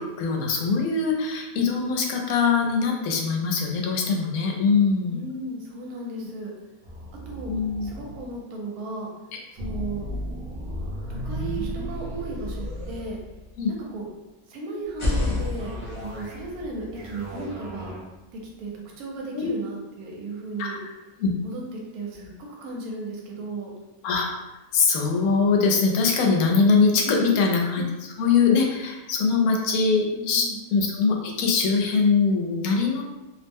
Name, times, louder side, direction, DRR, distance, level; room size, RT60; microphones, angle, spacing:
voice 1, 0.2-5.2 7.5-7.9 13.6-13.7 19.3-19.5 20.6-20.8 21.2-21.3 24.0-24.3 24.7-33.0, left 5 dB, 75° left, 1 dB, 1.0 m, -22 dB
voice 2, 5.1-6.5 7.3-7.5 7.8-9.1 9.5-10.1 11.1-13.2 13.7-14.1 14.5-18.0 18.3-18.7 19.0-20.8 21.4-23.7 26.8-27.4 30.1-30.6, right 2 dB, 80° right, -1 dB, 1.2 m, -35 dB
sound 1, 6.8-8.3 9.6-13.8 15.6-16.5 16.8-18.0, equal, 45° right, 0.8 m, -35 dB
sound 2, 14.8-18.7, left 2 dB, 50° left, 0.3 m, -31 dB
2.7 x 2.0 x 3.4 m, 1.1 s
omnidirectional pair, 1.6 m